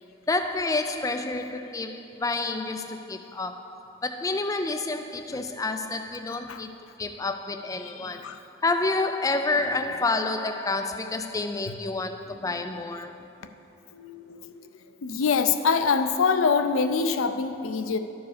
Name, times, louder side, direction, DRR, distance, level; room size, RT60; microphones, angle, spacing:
voice 1, 0.3-6.7 7.0-8.3 8.6-13.2, left 3 dB, 15° left, 0.3 m, -29 dB
voice 2, 7.8-8.4 13.9-14.6 15.0-18.0, left 5 dB, 80° left, 0.5 m, -25 dB
12.5 x 4.7 x 5.0 m
head